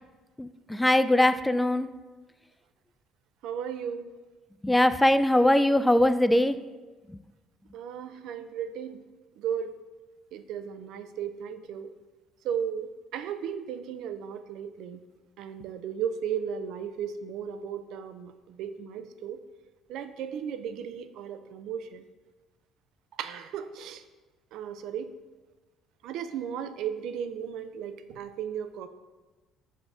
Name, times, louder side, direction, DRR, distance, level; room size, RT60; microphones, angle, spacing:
voice 1, 0.4-1.9 4.6-6.6, left 1 dB, 10° left, 12 dB, 0.3 m, -21 dB
voice 2, 3.4-4.1 7.7-9.0 9.4-9.7 10.3-11.9 12.4-15.0 15.4-19.4 19.9-22.0 23.2-24.0 24.5-25.1 26.0-28.9, right 8 dB, 70° right, 11 dB, 0.4 m, -35 dB
6.5 x 4.2 x 3.5 m, 1.2 s
supercardioid pair, 70°, 0 cm